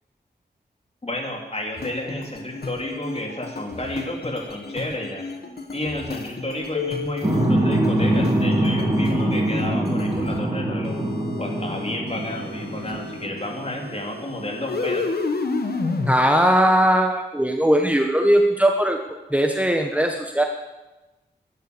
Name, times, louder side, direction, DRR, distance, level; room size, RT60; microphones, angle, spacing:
voice 1, 1.0-5.3 5.7-11.0 11.4-15.1, left 1 dB, 35° left, 1 dB, 3.1 m, -31 dB
sound 1, 1.8-10.4 10.8-16.1, left 4 dB, 60° left, 1.5 m, -32 dB
sound 2, 7.2-13.8, right 1 dB, 25° right, 4.3 m, -23 dB
voice 2, 16.1-19.0 19.3-20.4, equal, 5° right, 3 dB, 1.2 m, -19 dB
11.5 x 10.5 x 6.9 m, 1.1 s
cardioid pair, 50°, 18 cm